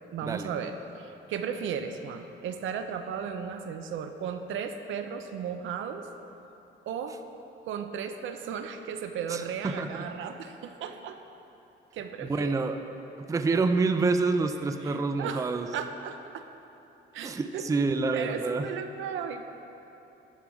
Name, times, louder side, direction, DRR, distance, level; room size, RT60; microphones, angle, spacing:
voice 1, 0.1-6.1 6.9-7.2 7.6-11.2 11.9-12.6 14.8-16.5 17.1-17.7 18.1-19.4, right 7 dB, 75° right, 7 dB, 0.5 m, -35 dB
voice 2, 9.3-10.1 12.3-12.8 13.3-15.7 17.2-18.7, right 3 dB, 15° right, 8 dB, 0.3 m, -27 dB
11.0 x 4.6 x 3.8 m, 3.0 s
cardioid pair, 90°, 20 cm